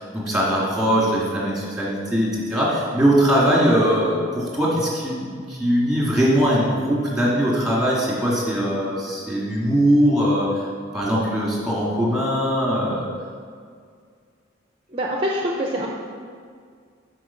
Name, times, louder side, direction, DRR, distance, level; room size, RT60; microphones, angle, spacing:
voice 1, 0.0-10.6 10.9-13.1, equal, 5° right, -5 dB, 2.1 m, -21 dB
voice 2, 14.9-15.9, equal, 30° right, -2 dB, 0.7 m, -24 dB
8.5 x 4.8 x 5.7 m, 2.1 s
head